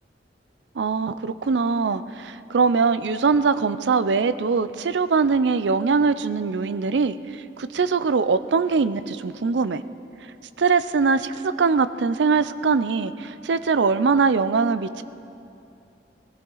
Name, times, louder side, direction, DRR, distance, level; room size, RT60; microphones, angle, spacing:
voice 1, 0.8-9.8 10.6-15.0, right 4 dB, 85° right, 14 dB, 0.5 m, -22 dB
19.5 x 15.5 x 3.9 m, 2.7 s
head